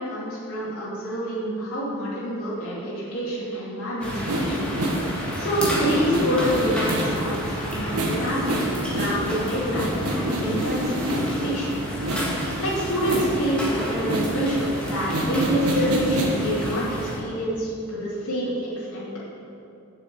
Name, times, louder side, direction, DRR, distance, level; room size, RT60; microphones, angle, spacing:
voice 1, 0.0-4.6 5.4-11.8 12.6-19.1, equal, 90° left, -10 dB, 2.7 m, -27 dB
sound 1, 4.0-17.2, equal, 5° left, 1.7 m, -31 dB
sound 2, 4.3-11.6 11.9-16.6, right 1 dB, 85° right, 1.5 m, -28 dB
8.3 x 6.5 x 8.0 m, 2.7 s
head